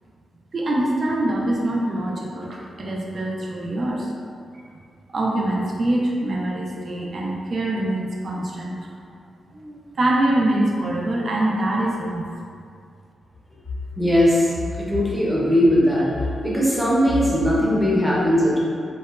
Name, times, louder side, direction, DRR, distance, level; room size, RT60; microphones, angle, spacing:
voice 1, 0.5-4.1 4.5-4.6 5.1-9.0 9.5-12.2, right 1 dB, 45° right, -2 dB, 0.3 m, -24 dB
voice 2, 14.0-14.5 14.9-16.1 16.4-18.6, equal, ahead, -7 dB, 0.6 m, -19 dB
2.7 x 2.1 x 2.3 m, 2.3 s
cardioid pair, 105°, 0 cm